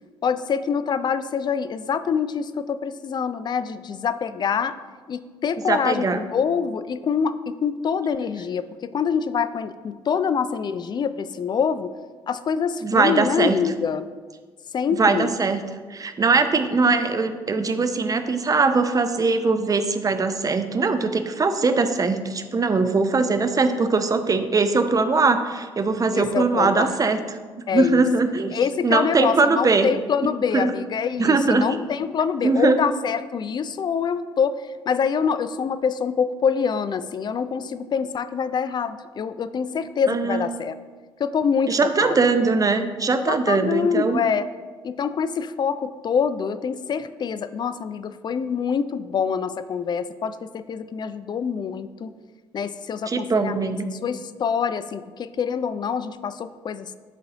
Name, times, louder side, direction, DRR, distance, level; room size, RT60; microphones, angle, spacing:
voice 1, 0.2-4.7 5.1-11.9 12.3-14.1 14.7-15.3 26.1-26.9 27.7-28.1 28.5-40.7 41.2-42.3 43.3-44.5 44.8-52.1 52.5-53.8 54.0-56.9, left 6 dB, 35° left, 13 dB, 0.4 m, -25 dB
voice 2, 5.7-6.2 12.8-13.6 14.9-15.6 15.9-27.4 27.7-29.9 30.5-30.7 31.2-31.6 32.4-32.8 40.1-40.5 41.7-44.2 53.1-53.9, right 4 dB, 25° right, 8 dB, 0.6 m, -21 dB
11.5 x 3.9 x 2.9 m, 1.5 s
figure-of-eight pair, 45°, 13 cm